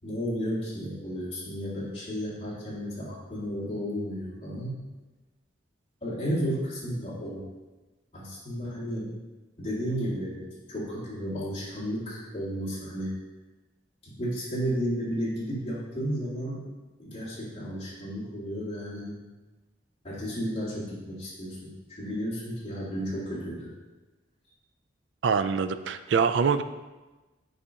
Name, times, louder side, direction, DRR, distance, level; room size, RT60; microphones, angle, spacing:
voice 1, 0.0-4.8 6.0-7.4 8.1-9.1 9.6-13.2 14.0-16.6 17.0-19.2 20.0-21.6 21.9-23.7, equal, 30° left, -9 dB, 2.1 m, -33 dB
voice 2, 25.2-26.6, right 6 dB, 75° right, 11 dB, 0.4 m, -24 dB
8.7 x 4.9 x 2.8 m, 1.2 s
head